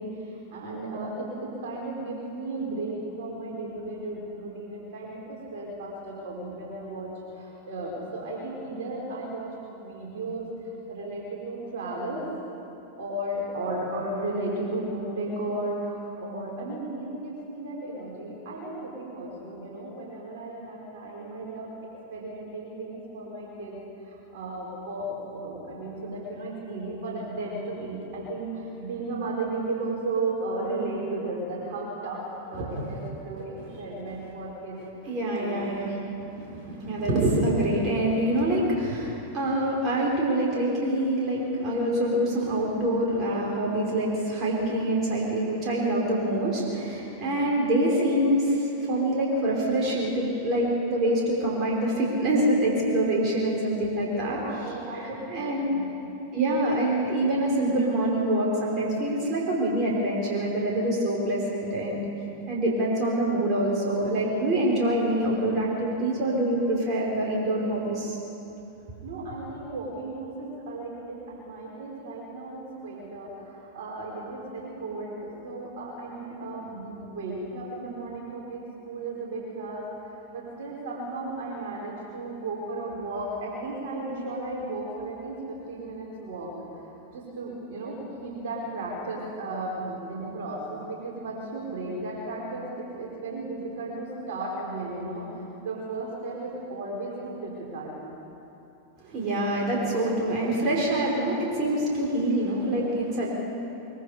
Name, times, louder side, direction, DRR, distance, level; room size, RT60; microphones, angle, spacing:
voice 1, 0.0-10.5 10.9-12.3 13.0-21.7 22.1-34.8 35.3-36.1 47.3-47.6 54.0-55.9 69.0-86.9 87.1-95.3 95.6-98.0, right 2 dB, 55° right, -4 dB, 5.3 m, -35 dB
voice 2, 35.1-35.9 36.2-54.4 54.9-55.7 56.3-62.0 62.5-68.2 99.0-103.3, right 1 dB, 35° right, -4 dB, 5.5 m, -25 dB
24.0 x 23.0 x 5.3 m, 2.9 s
figure-of-eight pair, 90°, 0 cm